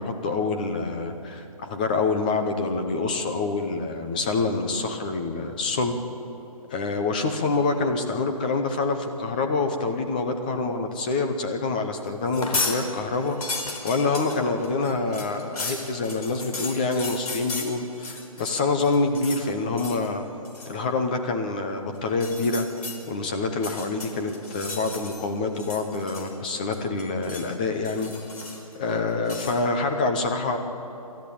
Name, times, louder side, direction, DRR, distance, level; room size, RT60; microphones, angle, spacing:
voice 1, 0.0-6.0 6.7-13.4 13.8-20.2 20.7-22.7 23.1-28.1 28.8-30.6, left 3 dB, 15° left, 5 dB, 0.7 m, -26 dB
sound 1, 12.2-12.8 13.1-18.5 18.8-19.4 19.8-20.1 20.4-20.8 22.1-23.0 23.5-25.3 25.5-26.5 26.7-27.5 27.8-28.7 29.3-29.6, left 3 dB, 75° left, 4.4 m, -34 dB
28.0 x 13.0 x 8.6 m, 2.9 s
hypercardioid pair, 175°, 19 cm